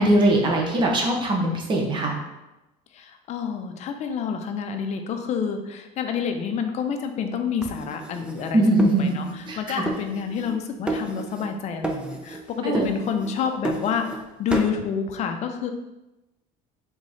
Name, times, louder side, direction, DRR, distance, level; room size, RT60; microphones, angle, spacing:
voice 1, 0.0-2.1 8.5-9.2 9.5-9.8 12.6-12.9, right 1 dB, 30° right, -1 dB, 0.9 m, -21 dB
voice 2, 2.9-15.7, left 6 dB, 45° left, 6 dB, 0.5 m, -28 dB
sound 1, 7.6-9.6 9.9-10.6 10.9-11.6 11.8-12.4 12.7-14.2 14.5-14.8, right 2 dB, 5° right, 0.4 m, -31 dB
3.6 x 3.1 x 4.1 m, 1.0 s
cardioid pair, 135°, 16 cm